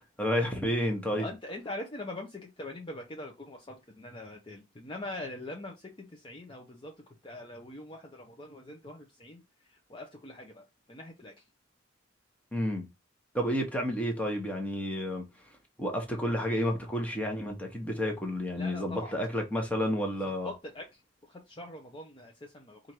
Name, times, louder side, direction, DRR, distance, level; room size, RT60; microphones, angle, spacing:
voice 1, 0.2-1.3 12.5-12.9 13.3-15.2 15.8-20.5, equal, 5° left, 1.1 m, -30 dB
voice 2, 1.2-6.9 7.2-9.4 9.7-11.4 18.6-19.2 20.2-21.0 21.3-22.9, left 1 dB, 25° left, 0.7 m, -43 dB
4.5 x 2.6 x 4.5 m
head